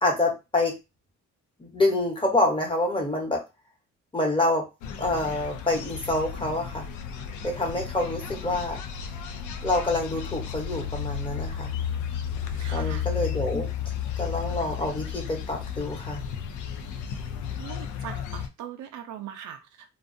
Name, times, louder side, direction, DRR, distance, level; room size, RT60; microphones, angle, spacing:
voice 1, 0.0-0.7 1.6-3.4 4.1-4.7 5.0-6.8 7.4-8.8 9.6-11.7 12.7-13.7 14.2-16.2, left 2 dB, 15° left, -1 dB, 1.0 m, -26 dB
sound 1, 4.8-18.5, left 8 dB, 75° left, 0.5 m, -33 dB
voice 2, 12.5-13.0 17.1-17.2 17.6-19.9, right 9 dB, 75° right, 7 dB, 0.5 m, -40 dB
2.5 x 2.1 x 2.5 m, 0.25 s
cardioid pair, 90°, 30 cm